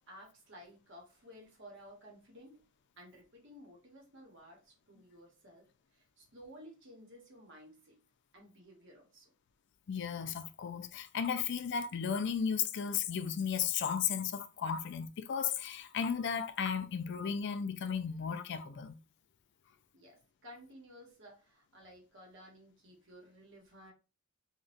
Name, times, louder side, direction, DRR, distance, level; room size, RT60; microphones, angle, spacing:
voice 1, 0.0-2.6 3.0-8.0 8.3-9.3 19.9-23.9, equal, 60° right, 1.0 m, -55 dB
voice 2, 9.9-19.0, left 7 dB, 60° left, 0.4 m, -34 dB
3.8 x 2.2 x 2.5 m
head